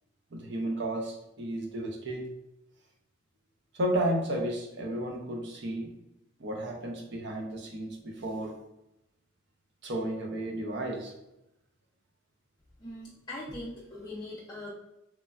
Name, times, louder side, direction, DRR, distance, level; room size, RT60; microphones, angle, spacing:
voice 1, 0.3-2.2 3.7-5.9 6.4-8.6 9.8-11.1, right 1 dB, 60° right, 2 dB, 0.5 m, -33 dB
voice 2, 12.8-14.7, left 1 dB, 20° left, -7 dB, 0.4 m, -41 dB
3.0 x 2.1 x 2.3 m, 0.88 s
head